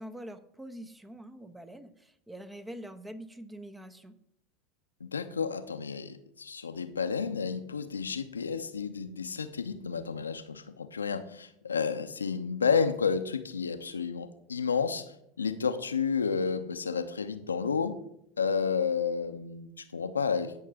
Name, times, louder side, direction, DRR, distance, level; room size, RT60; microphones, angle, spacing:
voice 1, 0.0-4.2, right 1 dB, 10° right, 12 dB, 1.1 m, -45 dB
voice 2, 5.0-18.0 18.4-20.6, left 5 dB, 85° left, 9 dB, 0.8 m, -31 dB
17.5 x 6.5 x 3.6 m, 0.74 s
figure-of-eight pair, 80°, 0 cm